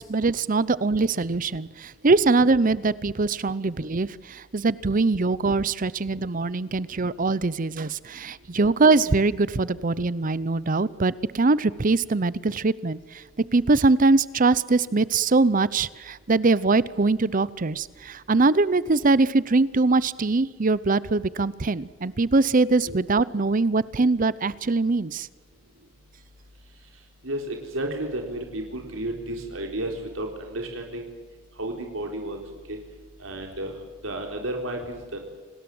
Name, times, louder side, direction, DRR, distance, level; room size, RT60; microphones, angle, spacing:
voice 1, 0.0-13.2 13.5-25.3, right 3 dB, 40° right, 19 dB, 0.7 m, -22 dB
voice 2, 27.2-31.1 31.6-32.4 32.7-32.8 33.2-33.7 34.0-35.2, right 1 dB, 85° right, 2 dB, 4.0 m, -32 dB
28.5 x 20.0 x 7.8 m, 1.3 s
head